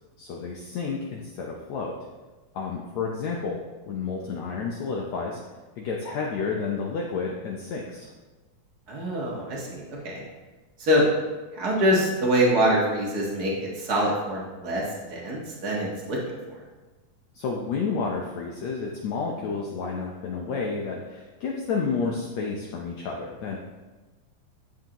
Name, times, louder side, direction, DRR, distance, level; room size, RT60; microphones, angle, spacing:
voice 1, 0.2-1.9 2.5-3.6 3.9-5.4 5.8-8.1 17.3-23.6, left 5 dB, 85° left, -1 dB, 1.5 m, -30 dB
voice 2, 8.9-10.2 10.8-11.0 11.5-14.8 15.1-16.2, equal, 65° right, -4 dB, 0.9 m, -24 dB
11.5 x 7.6 x 3.0 m, 1.2 s
omnidirectional pair, 4.3 m